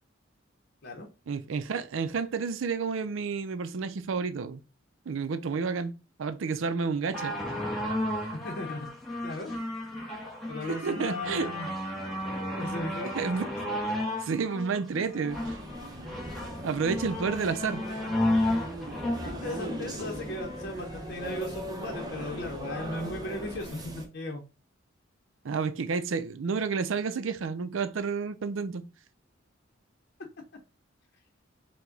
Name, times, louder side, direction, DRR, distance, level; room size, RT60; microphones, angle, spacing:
voice 1, 1.3-4.6 5.1-5.9 6.2-7.3 10.7-11.5 12.2-12.8 13.1-13.5 14.2-15.6 16.6-17.8 25.4-28.8, right 5 dB, 80° right, 0.5 m, -30 dB
sound 1, 7.1-20.7 21.5-21.6, left 1 dB, ahead, 1.0 m, -33 dB
voice 2, 8.3-8.9 9.2-9.5 10.5-11.7 12.6-13.2 19.2-24.4, left 1 dB, 55° left, 0.8 m, -36 dB
sound 2, 15.3-24.1, right 1 dB, 20° right, 0.8 m, -39 dB
4.7 x 2.2 x 3.9 m
head